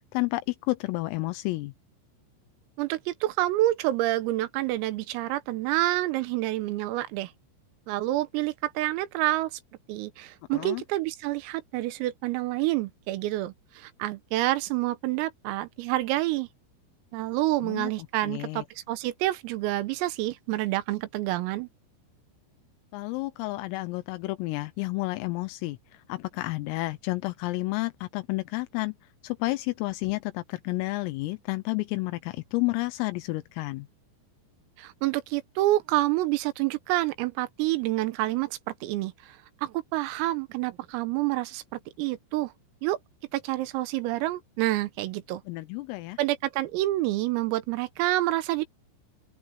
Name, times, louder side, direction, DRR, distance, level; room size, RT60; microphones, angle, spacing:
voice 1, 0.1-1.7 10.5-10.8 17.6-17.9 18.2-18.7 22.9-25.8 26.1-28.9 29.2-33.9 45.5-46.2, left 21 dB, 85° left, 3.6 m, -31 dB
voice 2, 2.8-7.3 7.9-9.5 9.9-16.5 17.1-21.7 34.8-42.5 42.8-43.0 43.3-45.4 46.2-48.7, right 16 dB, 85° right, 3.9 m, -28 dB
open air
omnidirectional pair, 5.9 m